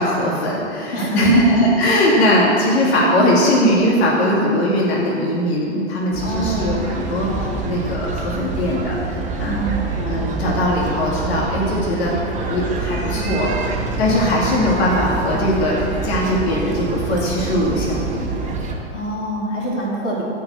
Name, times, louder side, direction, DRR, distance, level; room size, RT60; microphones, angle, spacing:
voice 1, 0.0-9.6 10.0-13.5 14.0-18.3, equal, 60° left, -4 dB, 2.7 m, -20 dB
voice 2, 0.9-1.3 6.2-6.8 9.4-9.8 18.9-20.2, right 2 dB, 80° left, -4 dB, 3.0 m, -25 dB
sound 1, 6.1-18.7, right 3 dB, 20° right, 1.6 m, -26 dB
14.0 x 5.5 x 7.2 m, 2.7 s
hypercardioid pair, 105°, 36 cm